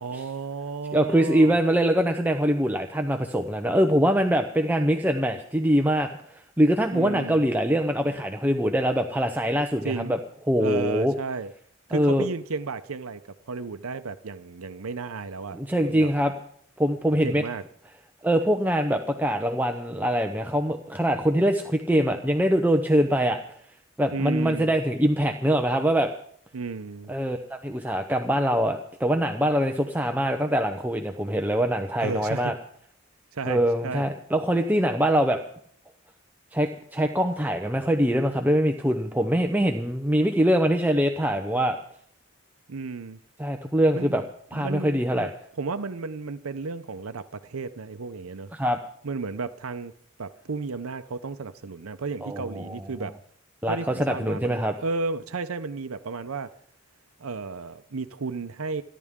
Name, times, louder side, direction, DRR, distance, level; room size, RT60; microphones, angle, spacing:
voice 1, 0.0-1.6 6.9-7.4 9.8-10.2 10.6-11.5 11.9-13.2 13.5-15.6 15.9-16.1 17.2-17.6 24.1-24.7 26.5-27.1 32.0-32.5 33.3-34.1 42.7-43.2 43.9-44.2 44.5-45.3 45.6-48.5 49.0-49.9 50.2-53.2 53.7-56.5 57.2-58.8, right 4 dB, 85° right, 10 dB, 0.7 m, -33 dB
voice 2, 0.9-10.2 10.5-11.1 11.9-12.3 15.5-16.3 16.8-17.4 18.2-23.4 24.0-26.1 27.1-32.5 33.5-35.4 36.5-41.8 43.4-44.2 44.5-45.3 48.5-48.8 52.2-52.8 53.6-54.7, equal, 10° right, 4 dB, 0.7 m, -23 dB
27.5 x 11.0 x 3.7 m, 0.64 s
head